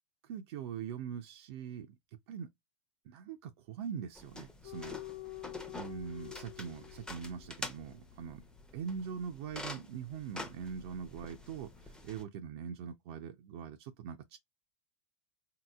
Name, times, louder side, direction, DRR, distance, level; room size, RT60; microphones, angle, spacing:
voice 1, 0.2-2.0 2.3-2.5 3.0-5.0 5.7-8.4 8.7-14.4, right 7 dB, 55° right, 0.5 m, -42 dB
sound 1, 4.2-12.2, left 2 dB, 5° left, 0.6 m, -47 dB
sound 2, 4.6-11.4 11.7-11.9, left 20 dB, 50° left, 0.4 m, -50 dB
3.7 x 2.8 x 2.3 m
hypercardioid pair, 95°, 16 cm